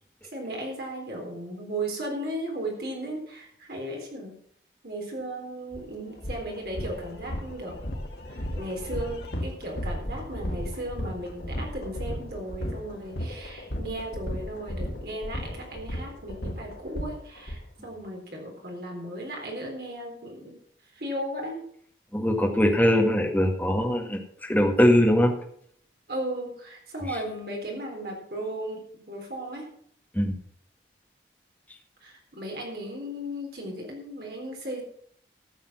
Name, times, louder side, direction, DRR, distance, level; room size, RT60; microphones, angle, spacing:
voice 1, 0.3-4.3 4.8-7.8 8.3-20.6 20.9-21.7 26.1-29.7 32.0-34.8, right 1 dB, 60° right, 0 dB, 3.8 m, -36 dB
sound 1, 5.7-5.8 6.2-17.6, equal, 65° left, 2.2 m, -34 dB
voice 2, 22.1-25.3 30.1-30.3, equal, 10° left, 1 dB, 1.7 m, -21 dB
13.5 x 7.1 x 6.1 m, 0.64 s
head